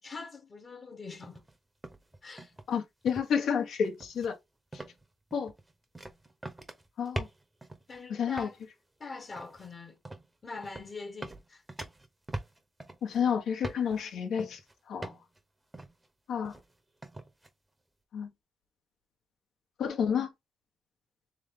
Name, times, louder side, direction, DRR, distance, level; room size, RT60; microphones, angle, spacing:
voice 1, 0.0-1.4 2.2-2.5 7.9-8.6 9.0-10.0 10.4-11.6, left 4 dB, 35° left, 1.2 m, -43 dB
sound 1, 1.2-1.6 1.8-2.8 3.1-3.4 3.8-4.3 4.7-5.0 5.3-8.0 8.3-8.6 9.3-9.7 10.0-10.3 10.6-10.9 11.2-13.2 13.6-14.0 14.4-14.7 15.0-15.4 15.7-16.1 16.4-16.7 17.0-17.5, right 2 dB, 15° right, 0.9 m, -42 dB
voice 2, 2.7-4.4 5.3-5.5 7.0-7.3 8.1-8.5 13.0-14.6 14.9-15.1 16.3-16.5 18.1-18.3 19.8-20.3, left 7 dB, 70° left, 1.3 m, -30 dB
3.6 x 3.3 x 3.4 m
cardioid pair, 90°, 0 cm